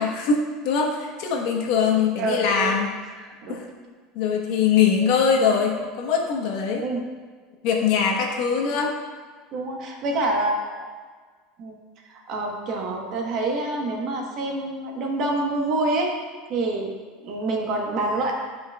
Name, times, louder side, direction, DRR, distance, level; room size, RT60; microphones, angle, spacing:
voice 1, 0.0-2.9 3.5-3.7 4.1-6.8 7.6-8.9, left 6 dB, 60° left, 1 dB, 1.1 m, -22 dB
voice 2, 2.2-2.7 3.2-3.6 6.8-7.0 9.5-10.9 11.6-11.8 12.1-16.1 16.5-16.9 17.2-18.3, right 2 dB, 45° right, 1 dB, 1.1 m, -26 dB
11.5 x 5.1 x 2.3 m, 1.5 s
cardioid pair, 155°, 0 cm